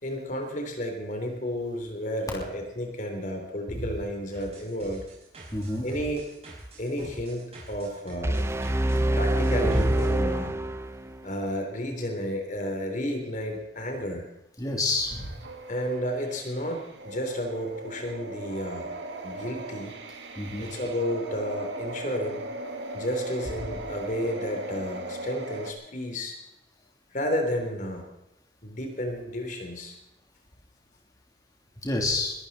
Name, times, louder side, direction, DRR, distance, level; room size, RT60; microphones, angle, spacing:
voice 1, 0.0-5.0 5.8-6.2 6.8-8.4 9.1-10.6 11.2-14.2 15.7-18.9 19.2-20.0 20.6-22.5 22.9-26.4 27.1-28.1 28.6-30.0, equal, 45° left, 3 dB, 3.5 m, -32 dB
sound 1, 4.3-10.1, right 1 dB, 35° right, 6.0 m, -45 dB
voice 2, 5.5-5.9 9.6-9.9 14.6-15.3 20.4-20.7 31.8-32.3, left 2 dB, 20° left, -2 dB, 3.2 m, -28 dB
sound 2, 8.2-11.3, right 1 dB, 15° right, 0.7 m, -25 dB
sound 3, 14.9-25.7, right 1 dB, 75° right, 2.2 m, -38 dB
22.0 x 13.5 x 4.2 m, 0.91 s
head